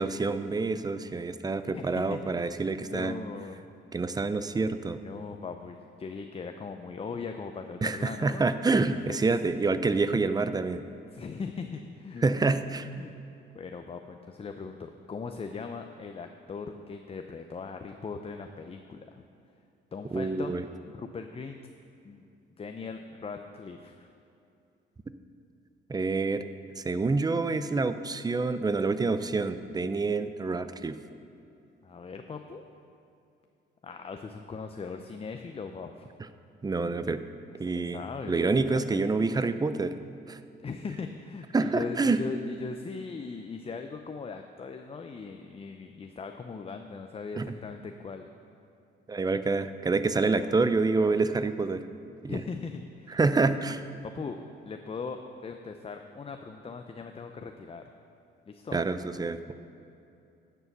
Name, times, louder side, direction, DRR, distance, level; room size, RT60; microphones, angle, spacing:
voice 1, 0.0-3.1 3.9-5.0 7.8-10.9 12.2-12.9 20.1-20.6 25.9-26.4 26.8-31.0 36.6-37.2 37.6-38.0 38.3-40.0 40.3-40.4 41.5-42.2 47.3-47.6 49.1-51.8 52.2-52.4 53.1-53.9 58.7-59.5, right 3 dB, 20° right, 12 dB, 0.5 m, -27 dB
voice 2, 1.7-2.5 2.8-3.7 5.0-9.2 11.1-12.2 13.0-13.1 13.5-19.2 19.9-20.6 20.9-21.6 22.0-22.2 22.6-24.1 31.8-32.6 33.8-36.1 37.6-39.0 40.6-48.3 50.2-50.8 52.3-53.2 54.1-57.8 58.5-58.8, left 5 dB, 30° left, 6 dB, 0.6 m, -39 dB
10.5 x 6.9 x 6.0 m, 2.7 s
cardioid pair, 90°, 20 cm